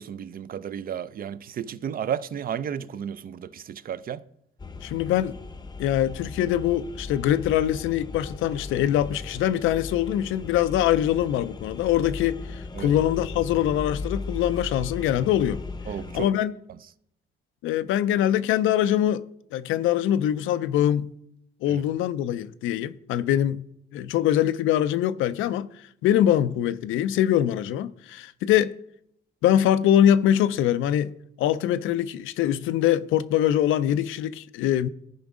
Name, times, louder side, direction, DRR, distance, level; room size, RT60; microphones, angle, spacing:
voice 1, 0.0-4.2 12.7-12.9 15.9-16.3 21.7-21.8, right 9 dB, 45° right, 0.4 m, -33 dB
sound 1, 4.6-16.3, left 3 dB, 20° left, 0.6 m, -37 dB
voice 2, 4.8-5.4 5.8-15.6 16.1-16.5 17.6-19.2 19.5-21.1 21.6-23.6 23.9-25.7 26.0-28.7 29.4-31.1 31.4-34.9, left 11 dB, 85° left, 0.4 m, -23 dB
14.0 x 5.1 x 3.6 m
cardioid pair, 90°, 20 cm